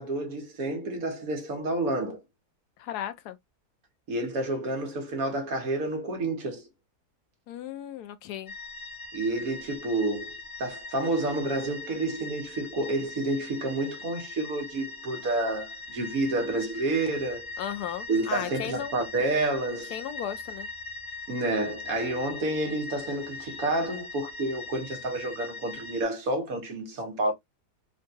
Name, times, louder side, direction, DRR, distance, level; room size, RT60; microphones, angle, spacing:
voice 1, 0.0-2.2 4.1-6.7 9.1-17.5 18.1-19.9 21.3-27.3, right 2 dB, 65° right, 1.5 m, -29 dB
voice 2, 2.8-3.4 7.5-8.5 17.6-18.9 19.9-20.7, left 10 dB, 80° left, 1.1 m, -35 dB
sound 1, 8.5-26.0, left 3 dB, 50° left, 1.0 m, -41 dB
3.7 x 2.3 x 2.6 m
omnidirectional pair, 1.7 m